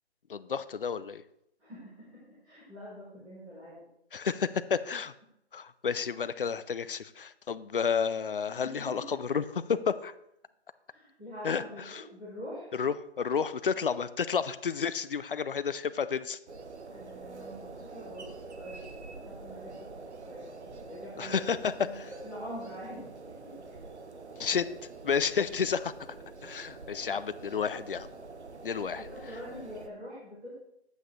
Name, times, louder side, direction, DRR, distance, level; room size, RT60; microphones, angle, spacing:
voice 1, 0.3-1.2 4.1-5.1 5.5-10.1 11.4-12.0 12.7-16.4 21.2-22.1 24.4-24.7 25.0-25.9 26.4-28.1 28.6-29.1, left 6 dB, 55° left, 14 dB, 0.5 m, -31 dB
voice 2, 1.6-3.7 8.5-8.8 9.3-9.4 10.9-12.7 16.9-18.3 18.5-23.3 23.7-23.8 29.0-30.5, equal, 5° right, -13 dB, 0.8 m, -45 dB
sound 1, 16.5-29.9, right 3 dB, 80° right, 1.0 m, -46 dB
9.2 x 8.1 x 3.2 m, 0.79 s
figure-of-eight pair, 165°, 33 cm